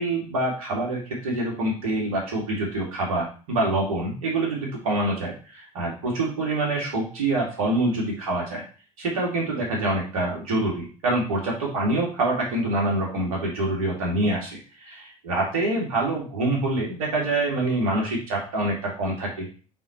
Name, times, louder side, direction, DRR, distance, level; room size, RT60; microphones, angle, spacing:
voice 1, 0.0-8.6 9.0-19.5, right 2 dB, 70° right, -2 dB, 2.6 m, -26 dB
8.8 x 3.9 x 3.2 m, 0.37 s
figure-of-eight pair, 60°, 18 cm